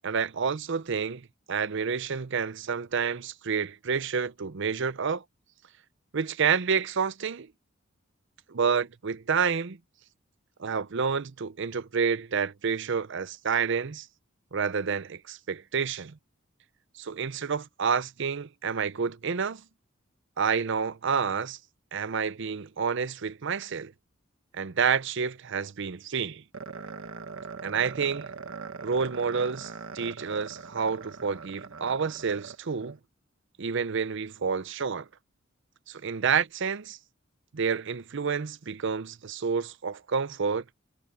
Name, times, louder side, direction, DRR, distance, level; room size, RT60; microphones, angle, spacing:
voice 1, 0.0-1.2 1.5-5.2 6.1-7.5 8.5-9.8 10.6-14.1 14.5-16.2 17.0-19.6 20.4-21.6 21.9-23.9 24.5-26.4 27.6-28.3 28.8-33.0 33.6-35.1 35.9-37.0 37.5-40.6, right 6 dB, 65° right, 0.6 m, -29 dB
sound 1, 26.5-33.0, right 4 dB, 85° right, 1.6 m, -41 dB
head